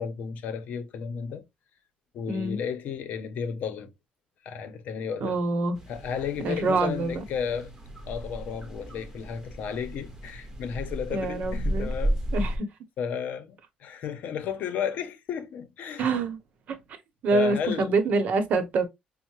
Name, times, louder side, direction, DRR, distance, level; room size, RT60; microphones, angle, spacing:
voice 1, 0.0-1.4 2.1-3.9 4.4-5.4 5.9-7.7 8.1-12.2 13.0-16.1 17.3-17.9, left 7 dB, 70° left, 0.7 m, -33 dB
voice 2, 2.3-2.6 5.2-5.8 6.4-7.2 11.1-11.9 12.3-12.7 16.0-16.4 16.7-16.8 17.2-18.9, right 3 dB, 60° right, 0.8 m, -25 dB
sound 1, 5.8-12.6, right 1 dB, 15° right, 1.1 m, -33 dB
5.4 x 2.1 x 2.9 m
cardioid pair, 140°, 3 cm